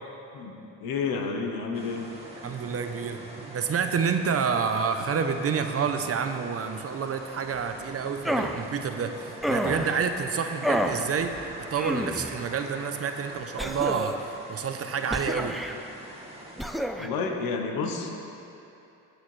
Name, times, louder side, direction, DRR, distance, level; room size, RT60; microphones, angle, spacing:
voice 1, 0.3-2.1 17.0-18.1, left 5 dB, 80° left, 3 dB, 1.2 m, -30 dB
sound 1, 1.7-16.7, right 1 dB, 15° right, 1.7 m, -44 dB
voice 2, 2.4-11.3 11.7-14.2 14.5-15.6, right 6 dB, 40° right, 7 dB, 0.8 m, -28 dB
sound 2, 8.2-8.6 9.4-10.0 10.6-11.0 11.8-12.4 13.6-14.3 15.1-15.8 16.6-17.1, equal, ahead, 0.5 m, -29 dB
17.5 x 6.4 x 3.3 m, 2.9 s
supercardioid pair, 75°, 35 cm